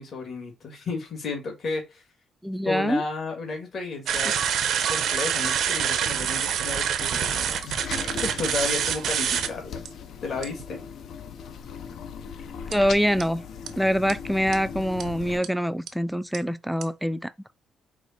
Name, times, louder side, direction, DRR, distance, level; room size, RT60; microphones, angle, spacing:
voice 1, 0.0-2.0 2.6-4.4 4.9-7.8 8.2-9.8 10.2-10.8, left 3 dB, 50° left, 1.6 m, -32 dB
voice 2, 2.4-3.0 12.7-13.5 13.8-17.3, equal, ahead, 0.3 m, -24 dB
sound 1, 4.1-9.5 9.8-9.9 10.4-10.6 12.7-12.8 13.2-13.3 13.7-13.8 14.1-14.2 14.5-14.6 15.0-15.1 15.4-15.5 15.9-16.0 16.3-16.4 16.8-16.9, right 8 dB, 70° right, 0.6 m, -26 dB
sound 2, 7.2-15.4, left 7 dB, 70° left, 0.6 m, -39 dB
4.8 x 2.0 x 4.1 m
cardioid pair, 90°, 0 cm